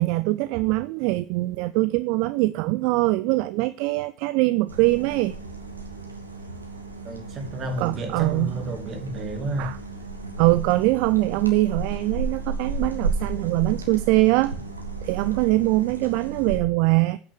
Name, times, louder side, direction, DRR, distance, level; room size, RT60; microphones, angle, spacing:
voice 1, 0.0-5.4 7.8-8.6 9.6-9.8 10.4-14.5 15.0-17.2, right 20 dB, 55° right, 0.4 m, -22 dB
sound 1, 4.7-16.6, right 3 dB, 85° right, 1.6 m, -33 dB
voice 2, 7.0-9.7, right 1 dB, 35° right, 2.5 m, -31 dB
8.7 x 6.1 x 6.6 m
figure-of-eight pair, 75°, 0 cm